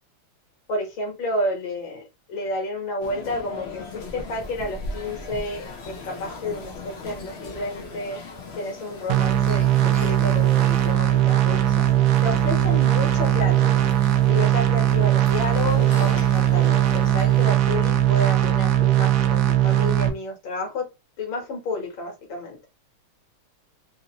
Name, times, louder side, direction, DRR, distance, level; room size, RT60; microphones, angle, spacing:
voice 1, 0.7-2.0 2.3-8.2 8.6-11.9 12.2-13.7 14.3-20.9 21.2-22.6, left 1 dB, 60° left, 2.0 m, -30 dB
sound 1, 3.0-17.5, left 3 dB, 80° left, 0.5 m, -38 dB
sound 2, 9.1-20.1, right 12 dB, 90° right, 0.8 m, -19 dB
4.4 x 2.6 x 2.8 m
omnidirectional pair, 2.4 m